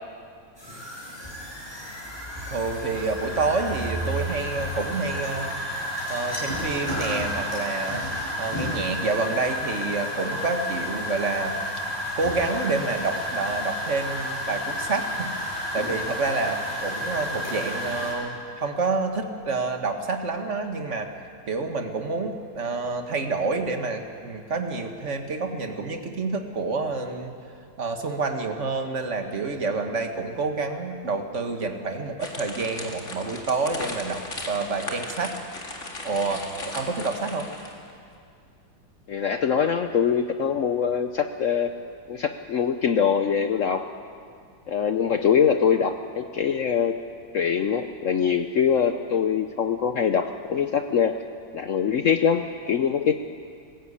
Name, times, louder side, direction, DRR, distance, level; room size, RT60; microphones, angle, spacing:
sound 1, 0.6-18.1, equal, 10° left, 6.7 m, -31 dB
voice 1, 2.5-5.5 6.1-8.0 8.4-11.6 12.2-21.1 21.5-27.3 27.8-34.2 34.5-35.3 36.0-37.5, right 3 dB, 40° right, 5 dB, 1.7 m, -28 dB
sound 2, 32.2-37.9, left 2 dB, 40° left, 2.4 m, -37 dB
voice 2, 39.1-41.7 42.1-43.8 44.7-47.0 47.3-51.1 51.5-53.1, left 7 dB, 65° left, 7 dB, 0.8 m, -23 dB
20.0 x 17.0 x 8.5 m, 2.3 s
omnidirectional pair, 2.0 m